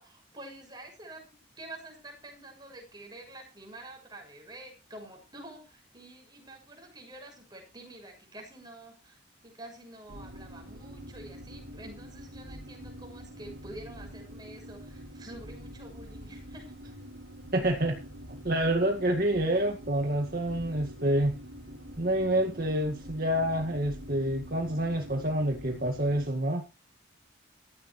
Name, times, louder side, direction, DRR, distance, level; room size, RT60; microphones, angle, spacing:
voice 1, 0.0-17.0, right 1 dB, 20° right, 2 dB, 6.7 m, -48 dB
sound 1, 10.1-26.3, equal, 75° right, 4.0 m, -45 dB
voice 2, 17.5-18.0 18.3-21.4 22.0-26.6, right 1 dB, 50° right, 3 dB, 2.0 m, -27 dB
16.5 x 14.0 x 3.3 m, 0.31 s
head